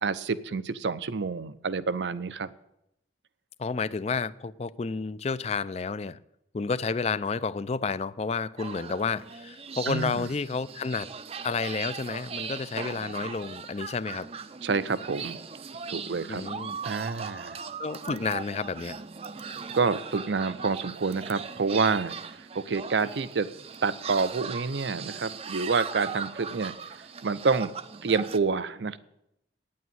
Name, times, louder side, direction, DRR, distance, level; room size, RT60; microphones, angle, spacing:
voice 1, 0.0-2.5 9.9-10.3 14.6-15.4 15.9-16.4 16.8-17.6 19.7-22.1 22.5-23.5 23.8-26.7 27.2-27.7 28.0-29.0, right 4 dB, 80° right, 14 dB, 0.6 m, -28 dB
voice 2, 3.6-6.2 6.5-11.1 11.4-14.3 16.3-16.8 17.8-19.0, left 4 dB, 35° left, 17 dB, 0.4 m, -31 dB
sound 1, 8.6-28.4, right 6 dB, 35° right, 0.5 m, -39 dB
9.3 x 8.6 x 9.3 m, 0.83 s
head